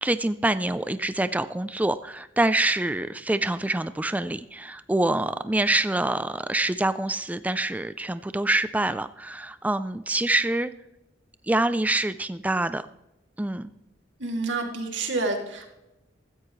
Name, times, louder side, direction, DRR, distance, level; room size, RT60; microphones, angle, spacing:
voice 1, 0.0-10.7 11.5-12.8 13.4-13.7, right 2 dB, 10° right, 12 dB, 0.3 m, -26 dB
voice 2, 14.2-15.7, right 3 dB, 90° right, 3 dB, 2.5 m, -28 dB
16.0 x 13.5 x 3.1 m, 0.92 s
head